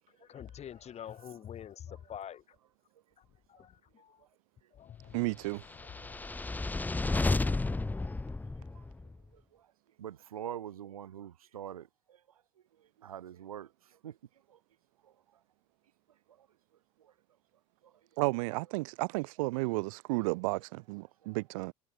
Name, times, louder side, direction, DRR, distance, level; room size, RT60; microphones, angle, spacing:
voice 1, 0.3-2.4 3.5-4.2 4.8-5.2 5.8-6.3, left 9 dB, 35° left, 1.6 m, -46 dB
voice 2, 5.1-5.6 18.2-21.7, right 26 dB, 65° right, 0.6 m, -32 dB
sound 1, 5.7-9.1, left 3 dB, 10° left, 0.6 m, -32 dB
voice 3, 10.0-11.9 13.0-13.7 14.0-14.1 14.5-14.6, right 10 dB, 80° right, 1.8 m, -43 dB
hypercardioid pair, 70°, 18 cm